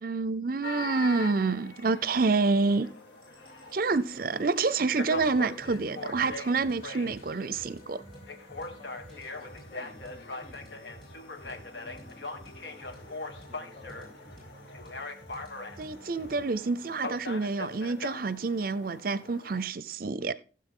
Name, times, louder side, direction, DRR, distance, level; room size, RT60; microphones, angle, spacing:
voice 1, 0.0-2.9 3.7-8.0 15.8-20.3, right 4 dB, 55° right, 0.6 m, -28 dB
sound 1, 0.6-19.7, left 3 dB, 80° left, 1.7 m, -42 dB
sound 2, 2.2-17.6, left 2 dB, 35° left, 7.8 m, -58 dB
sound 3, 3.2-18.6, right 1 dB, ahead, 6.9 m, -53 dB
voice 2, 8.8-10.9 11.4-14.7, left 2 dB, 50° left, 7.0 m, -54 dB
16.5 x 7.6 x 3.8 m
head